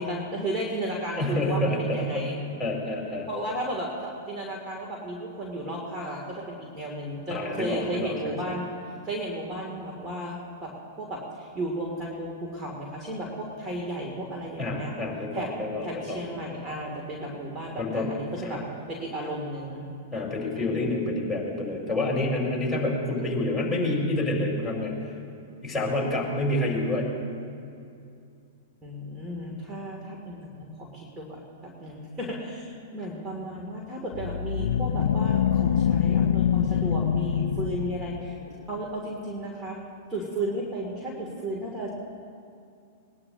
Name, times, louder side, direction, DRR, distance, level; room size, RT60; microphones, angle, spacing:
voice 1, 0.0-2.4 3.3-8.6 9.0-10.7 11.0-14.9 15.3-15.5 15.8-18.6 18.9-19.9 20.5-20.9 28.8-31.4 31.8-38.4 38.7-39.8 40.1-41.9, right 1 dB, 20° right, -2 dB, 2.9 m, -34 dB
voice 2, 1.2-2.3 2.6-3.3 7.3-8.5 14.6-16.2 17.8-18.1 18.4-18.6 20.1-24.9 25.6-27.1, left 1 dB, 5° left, -3 dB, 4.7 m, -28 dB
sound 1, 34.1-38.5, left 9 dB, 70° left, 0.4 m, -25 dB
20.5 x 19.5 x 3.0 m, 2.5 s
figure-of-eight pair, 105°, 0 cm